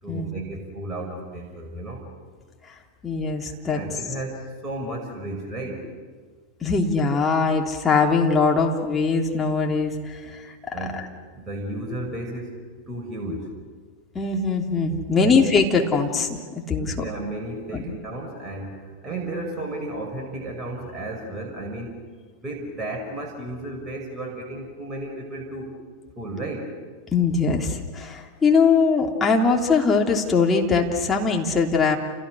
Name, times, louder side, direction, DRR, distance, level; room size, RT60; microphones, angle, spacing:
voice 1, 0.0-2.4 3.4-5.9 10.2-10.4 10.7-13.5 15.1-15.4 16.8-22.0 22.3-25.8 26.2-26.8, right 1 dB, 15° right, 0 dB, 5.8 m, -34 dB
voice 2, 3.0-3.8 6.6-11.1 14.1-17.0 17.7-17.8 27.1-32.0, left 4 dB, 15° left, 1 dB, 3.3 m, -21 dB
30.0 x 29.5 x 6.4 m, 1.6 s
figure-of-eight pair, 90°, 0 cm